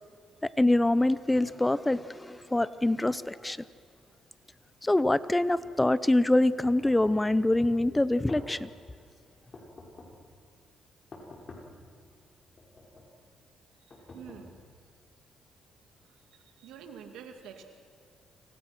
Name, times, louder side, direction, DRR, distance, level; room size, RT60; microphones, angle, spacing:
voice 1, 0.4-3.6 4.8-8.7, left 1 dB, 10° left, 16 dB, 0.7 m, -25 dB
sound 1, 6.6-7.4 8.0-8.8 9.5-10.3 11.1-11.8 12.6-13.2 13.9-14.8, left 2 dB, 40° left, 5.3 m, -48 dB
voice 2, 13.8-14.5 16.0-17.6, right 7 dB, 90° right, 5 dB, 2.7 m, -48 dB
29.5 x 25.5 x 6.2 m, 2.1 s
cardioid pair, 90°, 0 cm